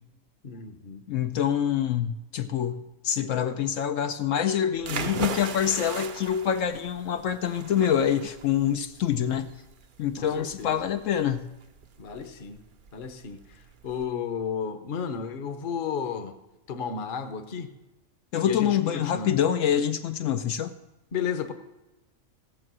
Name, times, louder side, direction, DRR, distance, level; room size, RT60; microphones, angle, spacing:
voice 1, 0.4-1.0 10.2-10.8 12.0-12.6 12.9-16.4 16.7-17.7 18.5-19.3 21.1-21.5, left 7 dB, 45° left, 8 dB, 0.9 m, -33 dB
voice 2, 1.1-9.5 10.0-11.5 18.3-20.7, left 9 dB, 75° left, 8 dB, 1.0 m, -26 dB
sound 1, 4.8-14.1, right 6 dB, 50° right, 0.7 m, -39 dB
16.5 x 7.5 x 6.1 m, 1.0 s
omnidirectional pair, 1.4 m